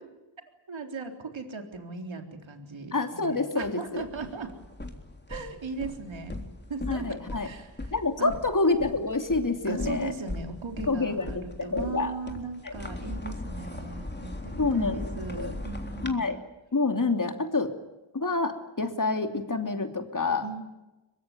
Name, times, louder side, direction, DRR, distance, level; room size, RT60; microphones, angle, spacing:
voice 1, 0.7-4.5 5.3-6.4 6.7-8.3 9.7-16.3 20.4-20.6, right 4 dB, 75° right, 5 dB, 3.9 m, -38 dB
voice 2, 2.9-4.0 6.9-7.5 7.9-10.1 10.9-12.1 12.6-12.7 14.6-15.5 16.0-16.4 16.7-17.7 18.1-20.5, left 3 dB, 40° left, 6 dB, 3.0 m, -27 dB
sound 1, 3.9-16.1, left 2 dB, 20° left, 3.6 m, -39 dB
23.5 x 21.5 x 9.3 m, 1.0 s
cardioid pair, 60°, 47 cm